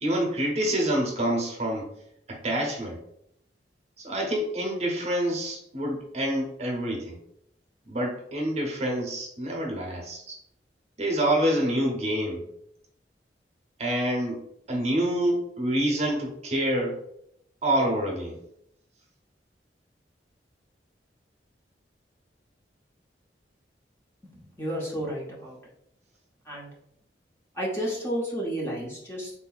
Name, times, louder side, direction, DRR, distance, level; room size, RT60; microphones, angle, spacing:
voice 1, 0.0-1.9 2.3-3.0 4.0-7.2 7.9-10.4 11.0-12.4 13.8-14.4 14.7-17.0 17.6-18.4, right 1 dB, 40° right, 0 dB, 0.7 m, -27 dB
voice 2, 24.2-25.6 26.5-26.7 27.6-29.3, equal, 15° left, -4 dB, 0.6 m, -32 dB
3.7 x 2.6 x 2.3 m, 0.74 s
head